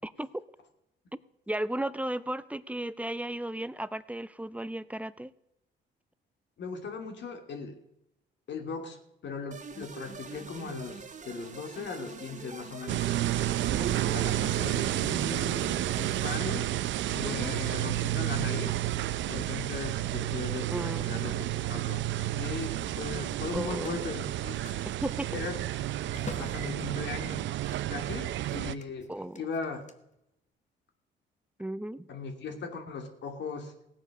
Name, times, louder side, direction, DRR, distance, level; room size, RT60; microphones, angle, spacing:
voice 1, 0.0-0.4 1.5-5.3 13.8-14.8 17.2-17.6 20.7-21.1 23.5-24.0 25.0-25.4 29.1-29.4 31.6-32.1, right 1 dB, 5° right, 16 dB, 0.6 m, -35 dB
voice 2, 6.6-7.8 8.5-13.1 14.1-16.7 17.1-18.8 19.3-21.4 21.7-22.0 22.3-24.6 25.3-25.5 26.4-27.4 27.9-29.1 29.4-29.8 32.1-33.7, left 4 dB, 65° left, 5 dB, 2.7 m, -38 dB
sound 1, 9.5-16.4, right 5 dB, 35° right, 1.9 m, -44 dB
sound 2, 12.9-28.7, right 13 dB, 70° right, 0.5 m, -31 dB
Telephone, 23.3-28.1 28.4-29.9, left 4 dB, 35° left, 1.4 m, -49 dB
17.0 x 9.0 x 6.6 m, 0.84 s
cardioid pair, 90°, 20 cm